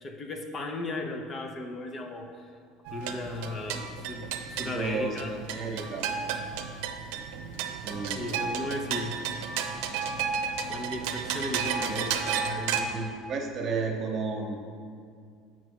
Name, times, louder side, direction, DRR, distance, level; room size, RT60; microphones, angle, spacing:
voice 1, 0.0-2.5 2.9-5.3 8.1-9.2 10.7-12.8, left 2 dB, 35° left, 4 dB, 0.7 m, -36 dB
sound 1, 2.8-12.8, right 7 dB, 85° right, 0.6 m, -33 dB
voice 2, 4.6-6.1 7.8-8.4 11.9-12.2 12.8-14.6, right 4 dB, 45° right, 2 dB, 1.0 m, -33 dB
7.6 x 6.0 x 4.6 m, 2.2 s
supercardioid pair, 120°, 0 cm